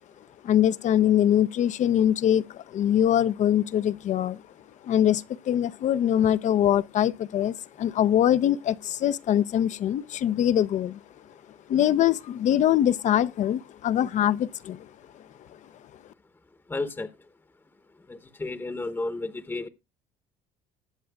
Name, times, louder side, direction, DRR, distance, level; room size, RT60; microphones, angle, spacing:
voice 1, 0.4-4.4 4.8-11.0 11.7-14.9, left 10 dB, 50° left, 0.6 m, -23 dB
voice 2, 16.7-17.1 18.1-19.7, left 2 dB, 15° left, 0.9 m, -32 dB
20.0 x 7.6 x 2.3 m
supercardioid pair, 100°, 16 cm